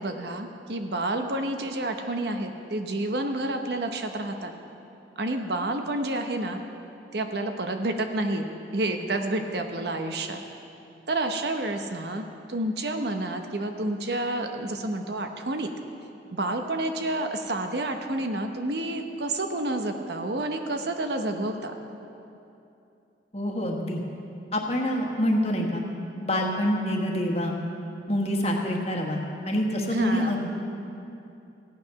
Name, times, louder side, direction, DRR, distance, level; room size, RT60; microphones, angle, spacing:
voice 1, 0.0-4.5 5.2-6.6 7.1-8.5 8.7-10.4 11.1-12.2 12.5-15.7 16.3-21.7 29.9-30.5, right 2 dB, 65° right, 5 dB, 0.9 m, -29 dB
voice 2, 23.3-24.0 24.5-25.8 26.2-27.6 28.1-29.2 29.5-30.5, equal, 35° left, 0 dB, 1.4 m, -26 dB
15.5 x 9.4 x 5.8 m, 2.8 s
head